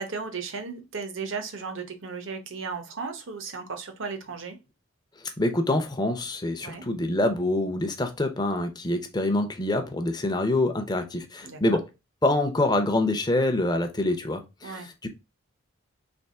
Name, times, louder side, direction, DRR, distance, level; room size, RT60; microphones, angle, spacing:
voice 1, 0.0-4.6 6.6-6.8 11.4-11.8 14.6-14.9, right 5 dB, 65° right, 0.9 m, -35 dB
voice 2, 5.4-11.8 12.2-15.1, left 2 dB, 20° left, 0.6 m, -26 dB
3.4 x 3.1 x 4.2 m
head